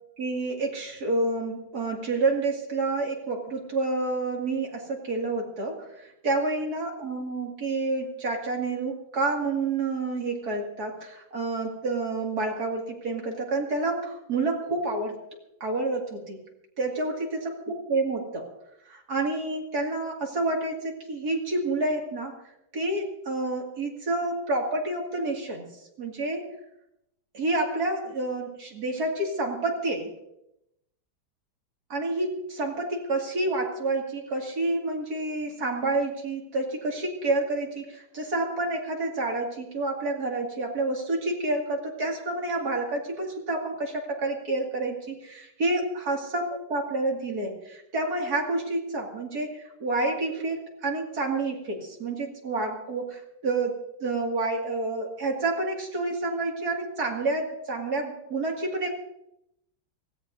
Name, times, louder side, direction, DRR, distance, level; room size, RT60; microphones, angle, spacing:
voice 1, 0.2-15.2 15.6-16.5 16.8-18.5 18.9-22.3 22.7-25.7 26.0-26.5 27.3-30.1 31.9-58.9, right 2 dB, 50° right, 0 dB, 2.7 m, -29 dB
24.0 x 17.0 x 2.7 m, 0.82 s
omnidirectional pair, 2.2 m